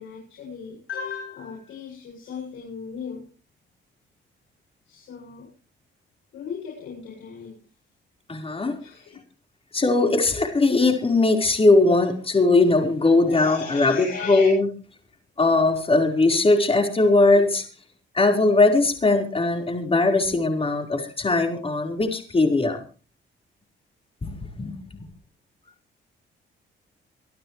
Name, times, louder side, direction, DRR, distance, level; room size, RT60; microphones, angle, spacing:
voice 1, 0.0-3.2 4.9-5.5 6.3-7.5 8.8-9.2 13.2-14.5 17.3-17.4, left 6 dB, 80° left, -1 dB, 7.6 m, -36 dB
voice 2, 8.3-8.7 9.7-14.7 15.4-17.6 18.1-22.8 24.2-24.8, left 2 dB, 30° left, 3 dB, 4.8 m, -20 dB
25.5 x 12.5 x 3.3 m, 0.38 s
cardioid pair, 90°, 20 cm